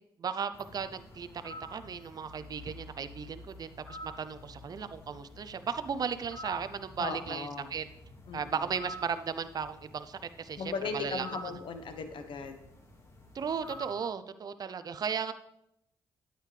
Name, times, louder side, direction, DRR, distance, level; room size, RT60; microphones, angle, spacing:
voice 1, 0.2-7.8 8.3-10.6 10.9-11.3 13.3-15.3, right 6 dB, 45° right, 11 dB, 0.5 m, -36 dB
sound 1, 0.5-13.9, equal, 35° left, 1.9 m, -49 dB
voice 2, 7.0-7.7 8.3-8.5 10.6-12.6, left 4 dB, 65° left, 7 dB, 1.1 m, -37 dB
9.1 x 8.4 x 3.3 m, 0.80 s
supercardioid pair, 60°, 9 cm